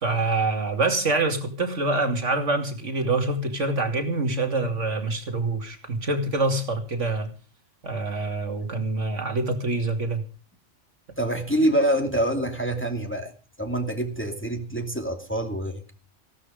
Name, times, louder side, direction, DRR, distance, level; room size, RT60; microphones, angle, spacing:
voice 1, 0.0-7.3 7.8-10.2, right 3 dB, 75° right, 6 dB, 2.8 m, -25 dB
voice 2, 11.2-13.3 13.6-15.9, right 1 dB, 10° left, 3 dB, 2.5 m, -26 dB
16.5 x 12.5 x 5.1 m, 0.37 s
omnidirectional pair, 1.3 m